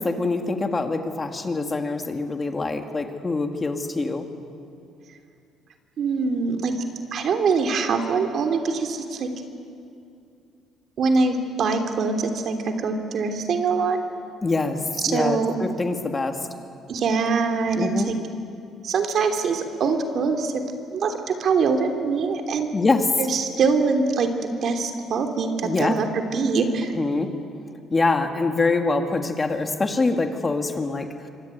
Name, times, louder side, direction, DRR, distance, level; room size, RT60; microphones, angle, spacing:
voice 1, 0.0-4.2 14.4-14.8 15.1-16.4 17.8-18.1 22.7-23.1 25.6-26.0 27.0-27.3 27.9-31.1, left 3 dB, 20° left, 5 dB, 2.1 m, -24 dB
voice 2, 6.0-6.7 7.1-9.3 11.0-14.0 15.0-15.5 16.9-18.1 18.8-20.6 20.9-22.7 23.2-24.3 24.6-26.9, right 4 dB, 55° right, 5 dB, 3.2 m, -23 dB
25.5 x 24.5 x 9.3 m, 2.5 s
cardioid pair, 115°, 0 cm